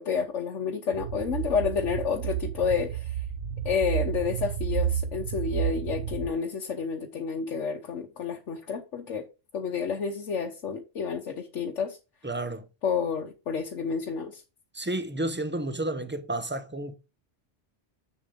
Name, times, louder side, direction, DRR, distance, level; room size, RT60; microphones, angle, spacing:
voice 1, 0.0-3.2 3.6-9.3 9.5-12.0 12.8-14.4, left 6 dB, 85° left, 1.4 m, -30 dB
sound 1, 0.9-6.3, right 9 dB, 90° right, 1.1 m, -31 dB
voice 2, 12.2-12.7 14.7-16.9, right 1 dB, 10° right, 0.7 m, -31 dB
7.8 x 7.1 x 3.6 m
omnidirectional pair, 1.2 m